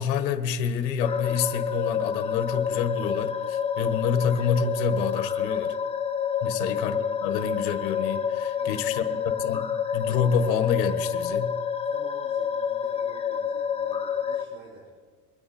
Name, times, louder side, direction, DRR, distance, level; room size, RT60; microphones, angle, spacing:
voice 1, 0.0-5.8 6.4-9.1 9.4-11.6, left 6 dB, 80° left, 9 dB, 1.5 m, -28 dB
sound 1, 1.0-14.4, left 7 dB, 15° left, 0.7 m, -28 dB
voice 2, 8.6-9.2 11.8-14.9, right 2 dB, 60° right, -4 dB, 4.2 m, -50 dB
23.5 x 9.6 x 4.3 m, 1.5 s
supercardioid pair, 140°, 49 cm